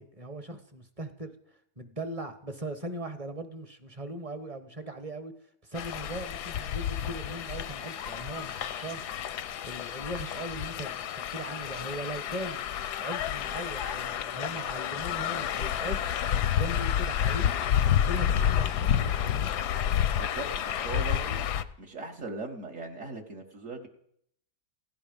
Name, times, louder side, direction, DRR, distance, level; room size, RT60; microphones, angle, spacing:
voice 1, 0.0-1.3 1.8-5.3 5.6-9.1 9.6-12.6 13.0-16.2 16.6-19.5, right 1 dB, 25° right, 1.3 m, -39 dB
sound 1, 5.7-21.6, left 9 dB, 85° left, 1.4 m, -30 dB
voice 2, 20.1-21.4 21.8-23.9, right 3 dB, 50° right, 2.0 m, -39 dB
16.5 x 16.5 x 5.3 m
omnidirectional pair, 1.7 m